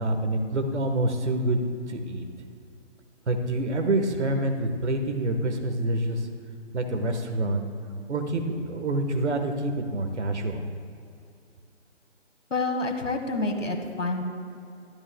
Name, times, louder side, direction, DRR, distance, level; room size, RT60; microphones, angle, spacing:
voice 1, 0.0-1.6 1.9-2.2 3.3-6.2 6.7-7.6 8.1-10.6, right 1 dB, 70° right, 5 dB, 1.4 m, -27 dB
voice 2, 12.5-14.2, left 2 dB, 85° left, 4 dB, 1.7 m, -28 dB
12.5 x 12.5 x 2.3 m, 2.6 s
figure-of-eight pair, 150°, 37 cm